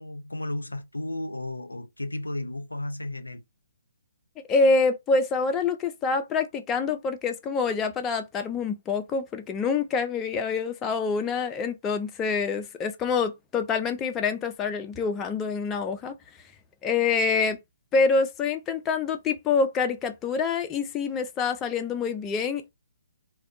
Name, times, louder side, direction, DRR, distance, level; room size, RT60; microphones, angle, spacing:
voice 1, 0.0-3.4, left 1 dB, 90° left, 0.4 m, -33 dB
voice 2, 4.5-16.2 16.8-17.6 17.9-22.7, left 4 dB, 15° left, 0.3 m, -26 dB
2.5 x 2.2 x 2.4 m
figure-of-eight pair, 135°, 0 cm